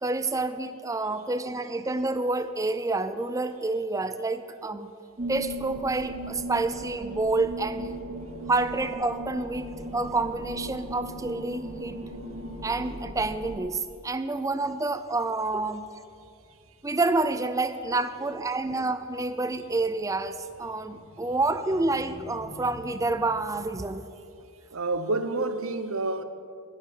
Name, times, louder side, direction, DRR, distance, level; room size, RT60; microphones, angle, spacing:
voice 1, 0.0-4.9 5.3-7.9 8.5-9.7 9.9-12.0 12.6-15.9 16.8-24.1, right 3 dB, 15° right, 0.4 m, -28 dB
sound 1, 5.2-13.6, equal, 35° right, 1.3 m, -38 dB
sound 2, 9.1-23.7, left 1 dB, 50° right, 2.8 m, -54 dB
voice 2, 24.7-26.2, right 2 dB, 70° right, 0.8 m, -29 dB
15.0 x 6.4 x 7.3 m
head